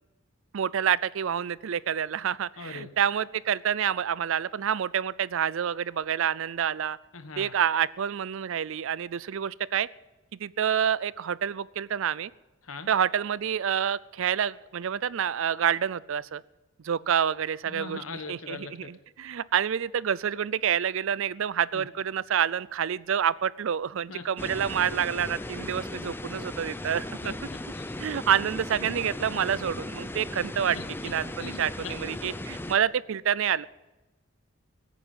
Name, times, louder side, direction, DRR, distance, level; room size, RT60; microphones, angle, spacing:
voice 1, 0.5-7.0 7.4-9.9 10.3-12.3 12.9-16.4 16.8-27.3 28.0-30.8 31.0-33.7, right 8 dB, 65° right, 20 dB, 0.4 m, -28 dB
voice 2, 2.6-2.9 7.1-7.5 12.6-12.9 17.7-18.9 21.7-21.9 24.1-24.5 27.2-27.8 30.7-31.1 31.4-31.9, left 4 dB, 80° left, 9 dB, 1.3 m, -41 dB
sound 1, 24.4-32.8, left 1 dB, 10° left, 0.6 m, -37 dB
22.0 x 9.2 x 5.4 m, 1.1 s
head